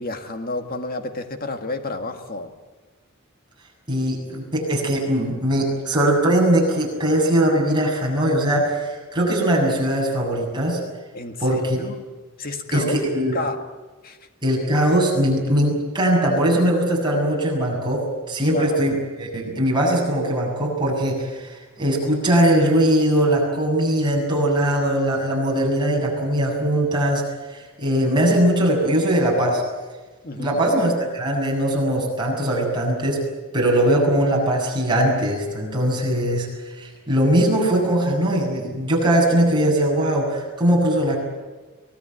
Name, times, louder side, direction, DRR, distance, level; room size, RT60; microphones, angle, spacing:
voice 1, 0.0-2.5 11.1-12.1 12.4-13.0 13.3-13.6 14.0-14.2 18.5-18.8 30.2-30.6, left 2 dB, 40° left, 6 dB, 1.9 m, -30 dB
voice 2, 3.9-10.8 11.4-11.8 12.7-13.4 14.4-18.9 19.3-27.2 27.5-29.6 30.4-33.2 33.5-36.5 36.8-41.2, right 1 dB, 20° right, -2 dB, 7.3 m, -20 dB
24.0 x 18.5 x 9.2 m, 1.3 s
head